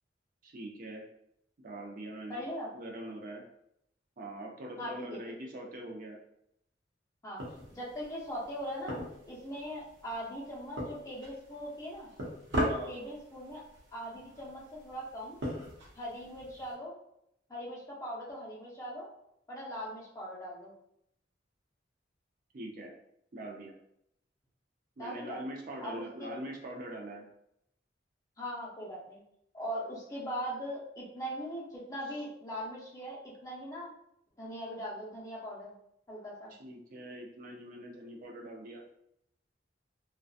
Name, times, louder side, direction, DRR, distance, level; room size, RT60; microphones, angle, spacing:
voice 1, 0.4-1.0 1.6-2.4 2.7-3.4 4.2-6.2 12.7-12.9 22.5-22.9 23.3-23.8 25.0-27.2 36.6-38.8, right 1 dB, 50° right, 0 dB, 0.4 m, -43 dB
voice 2, 2.3-2.7 4.8-5.1 7.2-9.0 9.3-12.1 12.9-13.6 13.9-15.4 16.0-16.9 17.5-19.1 19.5-20.7 25.0-25.4 25.8-26.3 28.4-29.2 29.5-33.9 34.4-35.7 36.1-36.5, equal, 20° left, -5 dB, 0.6 m, -40 dB
sound 1, 7.4-16.7, equal, 85° right, 0.8 m, -40 dB
2.6 x 2.2 x 2.3 m, 0.77 s
head